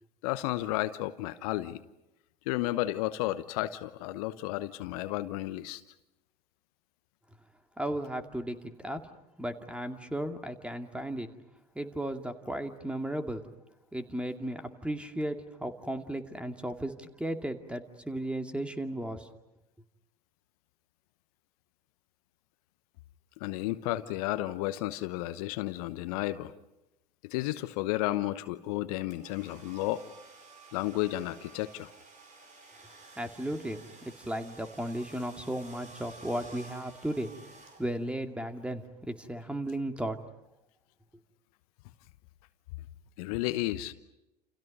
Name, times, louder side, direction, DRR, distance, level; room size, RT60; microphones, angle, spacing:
voice 1, 0.2-1.8 2.5-5.8 23.4-26.5 27.2-30.0 30.7-31.9 43.2-43.9, left 16 dB, 65° left, 13 dB, 1.0 m, -32 dB
voice 2, 7.8-9.0 9.4-11.3 11.7-13.5 13.9-19.3 33.2-37.3 37.8-40.2, right 1 dB, 5° right, 6 dB, 2.4 m, -35 dB
sound 1, 29.1-38.2, right 3 dB, 35° right, 5.3 m, -53 dB
29.5 x 29.5 x 5.4 m, 0.90 s
figure-of-eight pair, 70°, 21 cm